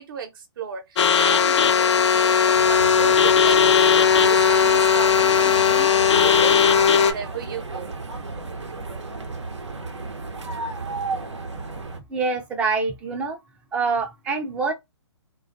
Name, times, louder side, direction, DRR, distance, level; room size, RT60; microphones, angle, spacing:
voice 1, 0.0-7.9, right 7 dB, 50° right, 0.7 m, -34 dB
sound 1, 1.0-7.1, left 7 dB, 80° left, 0.5 m, -17 dB
sound 2, 2.5-12.0, right 3 dB, 85° right, 0.8 m, -34 dB
voice 2, 12.1-13.4 13.7-14.7, right 4 dB, 10° right, 0.3 m, -25 dB
2.3 x 2.2 x 2.5 m
hypercardioid pair, 140°, 15 cm